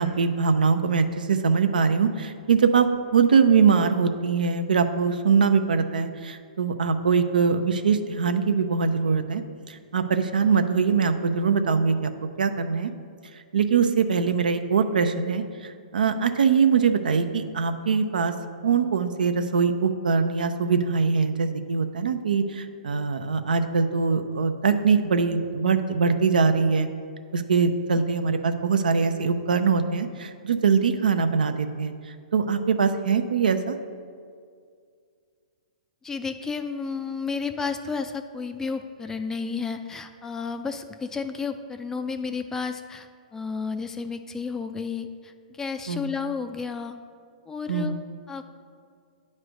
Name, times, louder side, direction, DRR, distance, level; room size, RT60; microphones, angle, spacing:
voice 1, 0.0-9.4 9.7-12.1 12.4-12.9 13.5-18.3 18.6-26.9 27.3-31.9 32.3-33.8 45.9-46.1 47.7-47.9, right 5 dB, 80° right, 8 dB, 0.5 m, -22 dB
voice 2, 36.0-47.0 47.5-47.9 48.3-48.4, left 5 dB, 10° left, 7 dB, 0.3 m, -32 dB
9.0 x 3.2 x 6.2 m, 2.2 s
hypercardioid pair, 135°, 5 cm